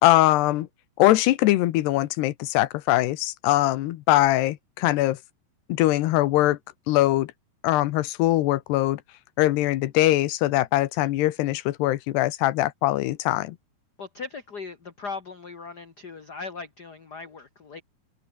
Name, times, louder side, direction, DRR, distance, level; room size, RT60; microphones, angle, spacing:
voice 1, 0.0-0.7 1.0-5.2 5.7-6.6 6.9-7.3 7.6-9.0 9.4-13.6, left 16 dB, 85° left, 3.1 m, -22 dB
voice 2, 14.0-17.8, left 4 dB, 35° left, 1.8 m, -38 dB
omnidirectional pair, 4.8 m